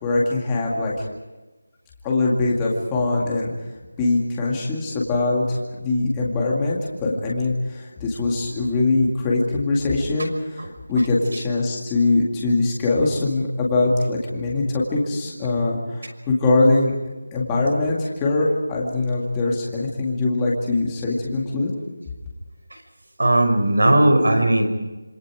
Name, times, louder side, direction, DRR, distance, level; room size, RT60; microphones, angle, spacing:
voice 1, 0.0-1.1 2.0-3.5 4.0-16.9 17.3-21.7, left 2 dB, 5° left, -4 dB, 2.2 m, -22 dB
voice 2, 23.2-24.7, right 1 dB, 65° right, 6 dB, 5.9 m, -17 dB
26.5 x 26.0 x 5.0 m, 1.2 s
figure-of-eight pair, 180°, 0 cm